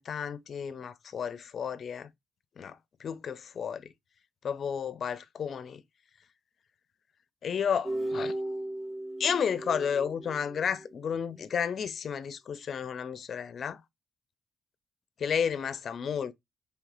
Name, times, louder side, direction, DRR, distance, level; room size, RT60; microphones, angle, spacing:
voice 1, 0.0-2.1 2.6-3.8 4.4-5.8 7.4-8.3 9.2-13.8 15.2-16.3, left 7 dB, 55° left, 0.5 m, -32 dB
sound 1, 7.8-11.1, right 1 dB, 35° right, 1.3 m, -36 dB
4.7 x 3.3 x 2.4 m
cardioid pair, 90°, 0 cm